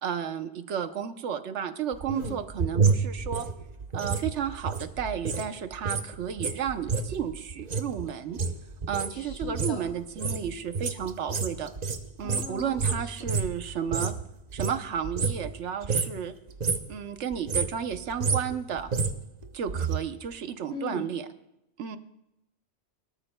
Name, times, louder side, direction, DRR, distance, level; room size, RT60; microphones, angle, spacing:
voice 1, 0.0-3.5 3.9-8.4 8.9-11.7 12.2-14.1 14.5-16.3 16.9-18.9 19.5-21.3 21.8-22.0, right 8 dB, 80° right, 10 dB, 1.1 m, -32 dB
sound 1, 1.9-5.5 5.7-14.2 14.5-15.6 15.8-16.2 16.5-16.9 17.3-20.0 20.3-20.4, right 5 dB, 40° right, 0.8 m, -29 dB
voice 2, 2.1-2.4 9.1-9.9 12.2-13.4 20.7-21.1, left 4 dB, 65° left, 1 dB, 1.5 m, -39 dB
24.5 x 13.0 x 2.2 m, 0.89 s
omnidirectional pair, 1.2 m